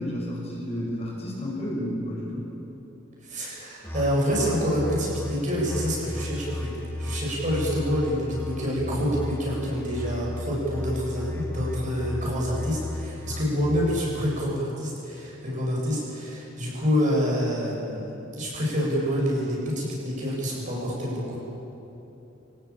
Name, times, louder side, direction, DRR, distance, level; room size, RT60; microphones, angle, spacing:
voice 1, 0.0-2.4, equal, 35° left, -3 dB, 6.3 m, -31 dB
voice 2, 3.2-6.7 7.0-21.4, equal, 40° right, -4 dB, 8.0 m, -27 dB
Musical instrument, 3.8-13.8, left 1 dB, 15° left, 2.2 m, -34 dB
25.5 x 18.0 x 8.8 m, 3.0 s
head